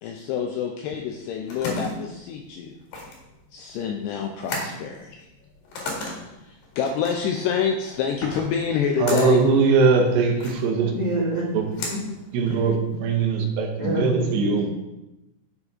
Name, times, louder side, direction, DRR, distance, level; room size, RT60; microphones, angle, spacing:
voice 1, 0.0-2.7 3.5-5.3 6.4-9.4, left 7 dB, 80° left, 3 dB, 2.5 m, -27 dB
sound 1, 1.0-13.0, left 2 dB, 60° left, 3.2 m, -36 dB
voice 2, 9.0-10.9 11.5-11.6 12.3-14.7, right 5 dB, 75° right, 2 dB, 3.0 m, -21 dB
voice 3, 10.9-12.0 12.5-12.6 13.8-14.6, right 1 dB, 25° right, -8 dB, 2.3 m, -27 dB
10.5 x 6.8 x 3.6 m, 0.96 s
omnidirectional pair, 5.4 m